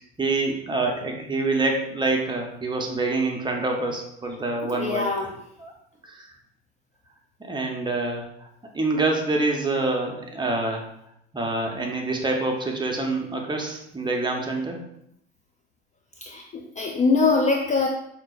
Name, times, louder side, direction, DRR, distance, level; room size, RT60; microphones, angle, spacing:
voice 1, 0.2-5.1 5.6-5.7 6.0-6.3 7.4-8.3 8.7-10.8 11.3-14.8, right 2 dB, 15° right, 1 dB, 0.9 m, -26 dB
voice 2, 4.6-5.3 16.2-17.9, left 4 dB, 25° left, 1 dB, 0.5 m, -23 dB
5.6 x 2.8 x 2.4 m, 0.74 s
hypercardioid pair, 80°, 32 cm